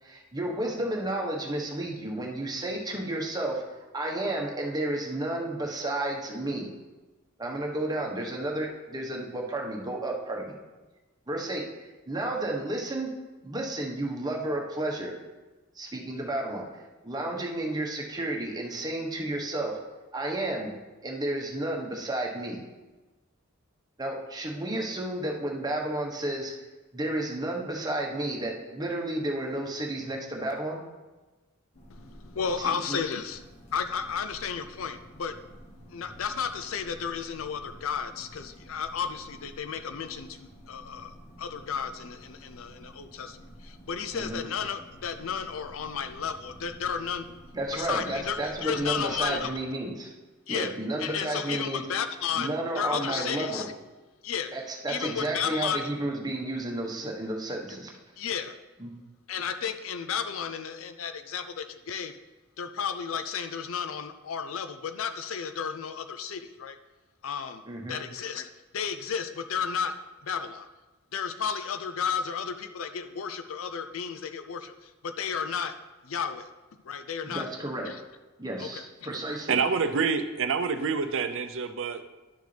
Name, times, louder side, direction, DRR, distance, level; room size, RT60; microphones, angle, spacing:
voice 1, 0.0-3.6 3.9-6.7 7.4-10.5 11.3-13.1 13.4-15.1 15.7-16.7 17.0-19.8 20.1-20.7 21.0-22.6 24.0-26.5 26.9-30.8 32.6-33.0 44.1-44.4 47.5-50.1 50.5-51.9 52.3-53.7 54.5-57.9 58.8-58.9 67.7-68.0 77.2-77.9 78.4-79.6, right 1 dB, 20° right, 0 dB, 1.2 m, -32 dB
sound 1, 31.7-49.5, equal, 35° left, 1.6 m, -50 dB
voice 2, 31.9-35.3 35.9-47.3 47.7-49.5 50.5-50.7 51.0-53.7 54.2-54.5 54.9-55.9 58.2-58.5 59.3-62.1 62.6-66.8 67.2-67.6 67.9-68.5 68.7-69.9 70.2-70.7 71.1-75.7 76.0-76.5 76.8-77.5 77.9-78.0 78.6-79.1, left 7 dB, 70° left, 10 dB, 0.5 m, -33 dB
voice 3, 79.5-82.0, right 5 dB, 65° right, 9 dB, 0.6 m, -27 dB
11.0 x 6.5 x 3.4 m, 1.2 s
head